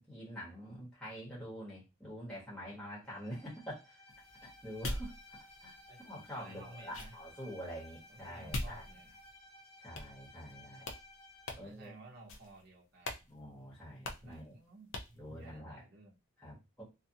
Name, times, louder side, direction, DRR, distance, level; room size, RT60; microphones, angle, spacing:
voice 1, 0.0-4.0 4.4-5.1 5.6-5.8 6.0-8.8 9.8-10.9 11.6-11.9 13.3-14.5 15.2-15.8 16.4-16.8, equal, 5° left, -7 dB, 1.3 m, -46 dB
Bowed string instrument, 3.0-11.7, left 2 dB, 30° left, 0.6 m, -57 dB
sound 1, 4.1-9.4 9.9-10.5 10.8-11.0 11.4-11.9 12.3-12.6 13.0-13.2 13.5-13.6 14.0-14.4 14.9-15.2, left 2 dB, 75° left, 0.6 m, -44 dB
voice 2, 6.4-7.2 8.1-9.2 11.5-13.3 14.2-16.2, right 2 dB, 50° right, -3 dB, 0.8 m, -55 dB
2.5 x 2.5 x 2.7 m, 0.25 s
head